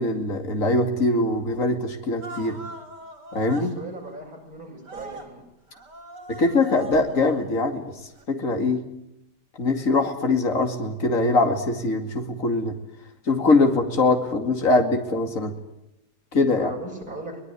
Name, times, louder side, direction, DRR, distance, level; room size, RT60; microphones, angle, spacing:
voice 1, 0.0-2.6 3.3-3.7 6.3-7.8 8.3-8.8 9.6-12.7 13.3-15.5 16.3-16.7, left 2 dB, 50° left, 5 dB, 2.8 m, -22 dB
sound 1, 2.2-3.7 4.9-5.3 5.7-7.4 8.1-8.2, right 2 dB, 85° right, 4.4 m, -40 dB
voice 2, 3.8-5.5 16.6-17.4, right 2 dB, 60° right, 1 dB, 7.2 m, -38 dB
23.5 x 20.0 x 9.9 m, 0.87 s
omnidirectional pair, 1.8 m